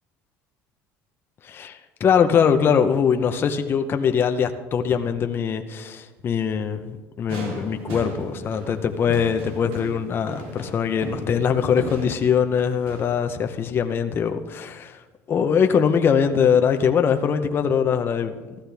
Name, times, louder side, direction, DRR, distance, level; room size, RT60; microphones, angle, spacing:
voice 1, 1.4-15.0 15.3-18.3, left 7 dB, 40° left, 7 dB, 0.9 m, -22 dB
sound 1, 7.3-13.1, equal, 85° right, 3.6 m, -36 dB
15.0 x 13.0 x 3.5 m, 1.2 s
supercardioid pair, 100°, 6 cm